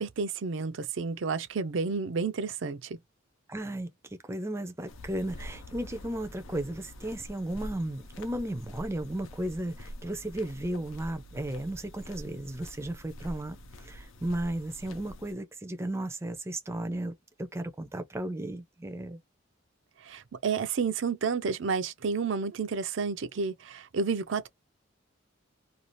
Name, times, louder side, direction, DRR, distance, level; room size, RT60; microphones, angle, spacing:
voice 1, 0.0-3.0 20.0-24.5, right 5 dB, 65° right, 0.5 m, -31 dB
voice 2, 3.5-3.9 4.3-19.2, right 1 dB, 15° right, 0.5 m, -35 dB
sound 1, 4.9-15.3, equal, 85° left, 0.6 m, -45 dB
2.6 x 2.4 x 3.0 m
head